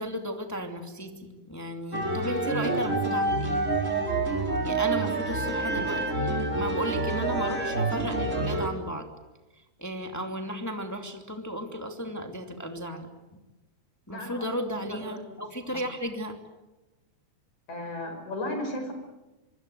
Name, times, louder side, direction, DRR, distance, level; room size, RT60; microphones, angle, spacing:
voice 1, 0.0-3.6 4.6-6.3 6.6-9.1 9.8-13.1 14.1-16.4, equal, 5° left, 4 dB, 2.3 m, -34 dB
sound 1, 1.9-8.7, right 2 dB, 25° right, 4.3 m, -27 dB
voice 2, 14.1-14.5 14.9-15.2 15.7-15.8 17.7-18.9, left 1 dB, 75° left, 4 dB, 6.9 m, -35 dB
25.5 x 25.0 x 7.9 m, 1.1 s
omnidirectional pair, 3.4 m